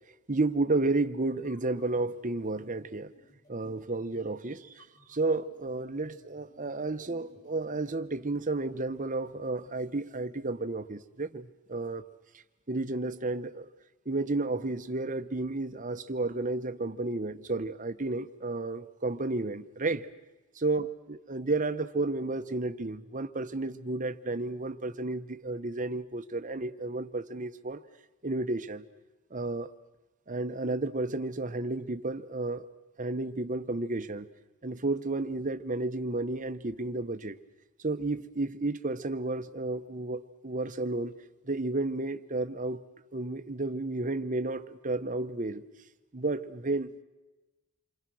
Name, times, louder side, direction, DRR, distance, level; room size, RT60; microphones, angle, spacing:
voice 1, 0.3-3.1 3.5-12.0 12.7-13.7 14.1-20.1 20.6-27.8 28.2-28.8 29.3-29.7 30.3-32.7 33.0-34.3 34.6-37.4 37.8-41.1 41.4-42.8 43.1-45.6 46.1-46.9, right 2 dB, 35° right, 1.0 m, -32 dB
sound 1, 1.3-9.8, left 1 dB, 30° left, 7.2 m, -62 dB
28.5 x 25.0 x 6.3 m
head